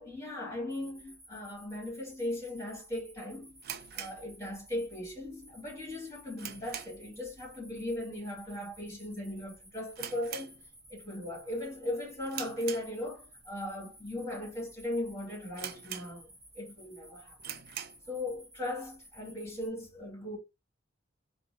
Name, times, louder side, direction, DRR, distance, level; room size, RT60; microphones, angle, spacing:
voice 1, 0.0-3.6 3.9-10.5 10.9-17.6 18.1-20.4, left 1 dB, 15° left, 2.2 m, -38 dB
sound 1, 0.7-19.7, equal, 20° right, 2.4 m, -56 dB
sound 2, 3.6-5.0 5.2-5.3 5.8-7.2 7.5-7.8 8.1-8.2 8.8-9.1 9.4-9.5 9.9-11.1 11.4-11.7 12.3-13.4 14.0-14.1 14.7-14.8 15.0-15.1 15.6-16.5 16.9-17.0 17.4-18.1, right 10 dB, 55° right, 0.4 m, -43 dB
4.4 x 2.3 x 2.8 m
head